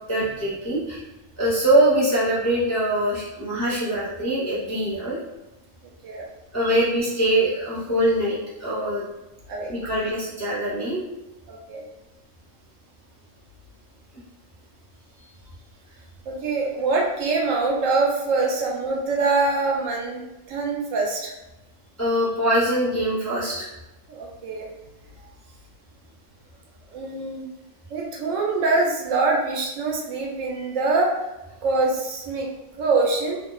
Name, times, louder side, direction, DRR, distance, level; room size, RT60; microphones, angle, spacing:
voice 1, 0.1-1.0 1.4-5.2 6.5-9.0 9.7-11.0 22.0-23.6, right 1 dB, 20° left, -9 dB, 0.5 m, -23 dB
voice 2, 11.5-11.8 16.3-20.2 20.5-21.3 24.1-24.7 26.9-27.5 27.9-31.1 31.6-32.5 32.8-33.4, right 3 dB, 85° right, -1 dB, 1.0 m, -24 dB
2.7 x 2.0 x 2.2 m, 0.99 s
omnidirectional pair, 1.3 m